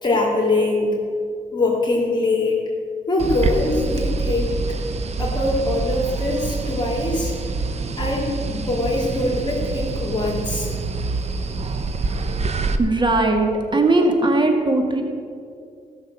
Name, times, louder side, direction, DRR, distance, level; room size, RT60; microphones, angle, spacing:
voice 1, 0.0-1.0 1.5-2.6 3.1-4.5 5.2-7.3 8.0-10.7, left 2 dB, 30° left, -3 dB, 2.7 m, -22 dB
sound 1, 3.2-12.8, right 3 dB, 50° right, 0.9 m, -26 dB
voice 2, 12.8-15.0, right 2 dB, 35° right, 3 dB, 2.0 m, -19 dB
14.0 x 6.4 x 7.5 m, 2.4 s
cardioid pair, 70°, 14 cm